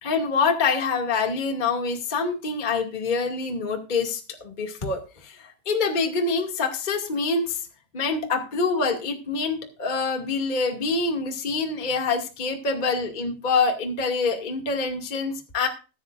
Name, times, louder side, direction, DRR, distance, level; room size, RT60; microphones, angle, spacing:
voice 1, 0.0-7.7 7.9-15.7, left 4 dB, 25° left, 2 dB, 1.1 m, -26 dB
20.0 x 9.5 x 2.6 m, 0.32 s
omnidirectional pair, 5.0 m